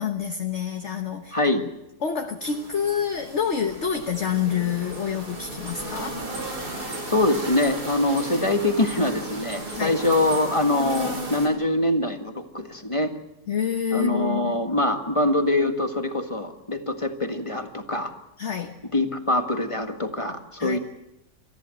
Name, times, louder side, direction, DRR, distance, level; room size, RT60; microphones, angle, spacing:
voice 1, 0.0-1.7 2.0-6.2 9.7-10.0 13.5-14.6 18.4-18.8 20.6-20.8, left 7 dB, 50° left, 5 dB, 1.3 m, -27 dB
voice 2, 1.3-1.6 7.1-13.1 13.9-18.1 18.9-20.8, left 1 dB, 20° left, 5 dB, 1.7 m, -24 dB
sound 1, 2.4-11.5, right 1 dB, 80° right, 5.3 m, -35 dB
28.5 x 14.5 x 7.8 m, 0.90 s
omnidirectional pair, 1.7 m